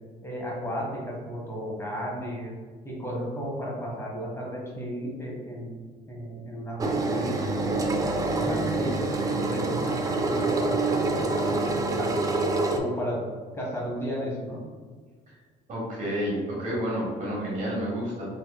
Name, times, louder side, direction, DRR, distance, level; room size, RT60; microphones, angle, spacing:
voice 1, 0.2-2.5 2.8-5.7 6.1-8.0 8.3-12.1 12.7-13.2 13.5-14.6, equal, 15° left, -3 dB, 1.2 m, -34 dB
Engine, 6.8-12.8, right 3 dB, 20° right, 0.4 m, -26 dB
voice 2, 15.7-18.4, equal, 50° right, -5 dB, 1.4 m, -30 dB
4.1 x 3.1 x 2.3 m, 1.5 s
cardioid pair, 110°, 17 cm